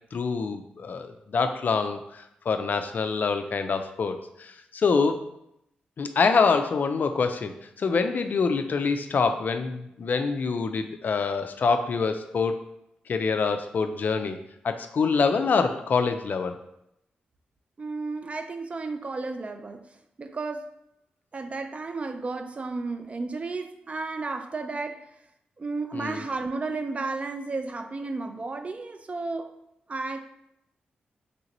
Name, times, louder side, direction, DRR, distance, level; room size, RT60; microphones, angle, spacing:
voice 1, 0.1-5.2 6.0-12.6 13.1-14.4 14.6-16.5 25.9-26.2, left 4 dB, 55° left, 8 dB, 0.3 m, -25 dB
voice 2, 17.8-19.9 20.2-20.7 21.3-25.0 25.6-29.5 29.9-30.2, right 3 dB, 40° right, 8 dB, 0.3 m, -33 dB
3.3 x 2.8 x 2.6 m, 0.80 s
cardioid pair, 60°, 3 cm